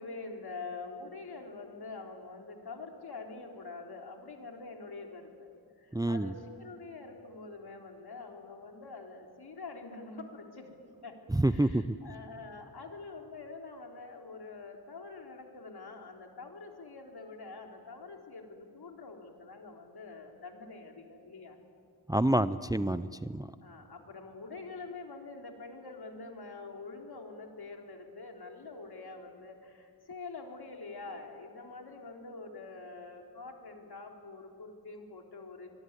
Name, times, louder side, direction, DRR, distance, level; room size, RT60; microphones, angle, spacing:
voice 1, 0.0-10.7 11.0-21.6 23.6-35.7, left 3 dB, 75° left, 2 dB, 3.9 m, -45 dB
voice 2, 5.9-6.3 11.3-11.8 22.1-23.5, right 1 dB, 10° right, 14 dB, 0.6 m, -27 dB
26.0 x 21.5 x 9.8 m, 2.3 s
wide cardioid pair, 110°, 39 cm